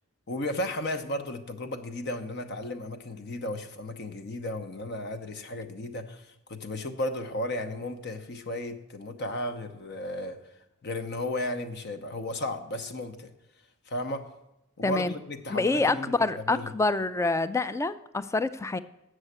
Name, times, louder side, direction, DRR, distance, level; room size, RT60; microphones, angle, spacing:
voice 1, 0.3-10.4 10.8-13.3 13.9-14.4 14.8-16.7, left 1 dB, 55° left, 7 dB, 0.9 m, -34 dB
voice 2, 14.8-15.1 15.5-18.8, left 3 dB, 15° left, 14 dB, 0.3 m, -27 dB
8.6 x 6.4 x 7.9 m, 0.91 s
head